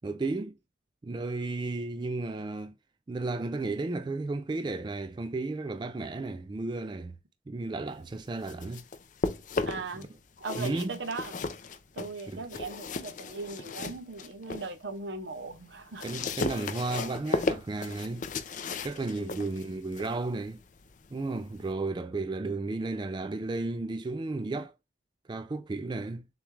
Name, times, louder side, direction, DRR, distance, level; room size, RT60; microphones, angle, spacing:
voice 1, 0.0-0.6 1.0-2.7 3.1-7.1 7.5-8.8 10.6-11.0 12.3-12.4 16.0-18.3 18.8-20.6 21.1-24.7 25.3-26.3, right 3 dB, 25° right, 0.3 m, -33 dB
sound 1, 8.2-10.0 10.4-14.7 15.1-21.7, left 3 dB, 45° left, 0.5 m, -36 dB
voice 2, 9.7-10.1 10.4-11.4 11.9-16.1 19.2-19.4, right 3 dB, 75° right, 0.8 m, -38 dB
6.8 x 2.3 x 3.2 m
head